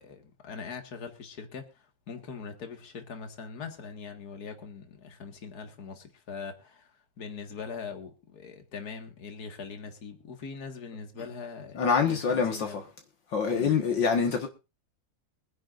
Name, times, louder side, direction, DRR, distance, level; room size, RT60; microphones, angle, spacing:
voice 1, 0.0-12.8 13.5-13.7, left 5 dB, 55° left, 2.3 m, -42 dB
voice 2, 11.7-12.9 13.3-14.5, left 6 dB, 70° left, 2.2 m, -25 dB
23.5 x 10.5 x 2.5 m
omnidirectional pair, 2.1 m